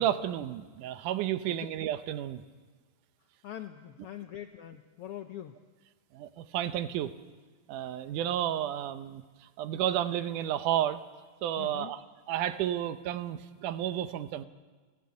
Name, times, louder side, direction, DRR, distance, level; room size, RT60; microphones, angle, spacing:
voice 1, 0.0-2.4 6.1-7.1 7.7-11.0 11.4-12.0 12.3-14.4, right 11 dB, 85° right, 12 dB, 2.4 m, -31 dB
voice 2, 3.4-5.6 11.6-11.9, left 11 dB, 80° left, 8 dB, 1.3 m, -43 dB
28.5 x 12.0 x 8.6 m, 1.4 s
omnidirectional pair, 3.6 m